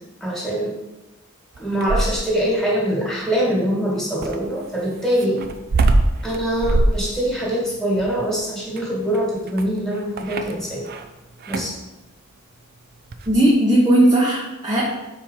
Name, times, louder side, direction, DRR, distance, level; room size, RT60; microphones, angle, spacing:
voice 1, 0.2-0.8 1.6-5.4 6.2-10.9 11.5-11.8, equal, ahead, -5 dB, 1.8 m, -23 dB
sound 1, 1.5-2.4 4.2-11.1 11.4-11.8 13.1-13.4, right 2 dB, 50° right, 0.5 m, -23 dB
voice 2, 13.3-14.8, right 1 dB, 20° right, -5 dB, 0.9 m, -16 dB
4.5 x 4.5 x 5.5 m, 1.0 s
head